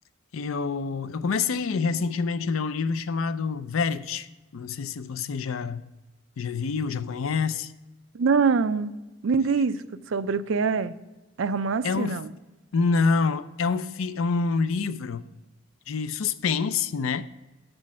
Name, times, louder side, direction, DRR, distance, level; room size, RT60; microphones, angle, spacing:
voice 1, 0.3-4.3 4.5-5.8 6.4-7.7 11.8-12.2 12.7-15.2 15.9-17.3, left 4 dB, 75° left, 0.5 m, -27 dB
voice 2, 8.1-8.9 9.2-9.8 10.1-10.9 11.4-12.3, right 5 dB, 65° right, 0.4 m, -24 dB
6.5 x 6.2 x 7.3 m
head